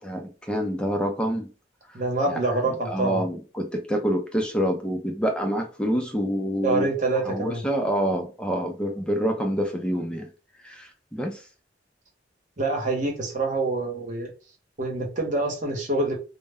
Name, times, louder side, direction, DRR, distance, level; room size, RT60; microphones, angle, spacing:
voice 1, 0.0-1.5 1.9-2.0 2.3-2.4 2.9-6.9 7.3-10.3 10.6-11.4, equal, 5° left, 0.4 m, -27 dB
voice 2, 1.9-3.2 6.6-7.6 12.6-14.3 14.8-16.2, right 2 dB, 40° right, 0.9 m, -26 dB
2.2 x 2.0 x 3.4 m
head